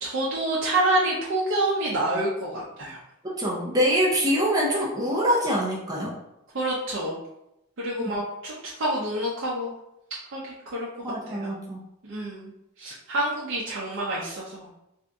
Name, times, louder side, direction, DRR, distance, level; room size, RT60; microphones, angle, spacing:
voice 1, 0.0-3.0 6.5-7.2 7.8-9.7 10.3-10.4 10.7-10.9 11.3-11.5 12.0-12.5 12.8-14.7, right 1 dB, 60° right, -6 dB, 0.6 m, -27 dB
voice 2, 3.2-6.1 8.0-8.1 11.0-11.8, equal, 20° right, -5 dB, 0.5 m, -24 dB
2.7 x 2.5 x 3.4 m, 0.85 s
head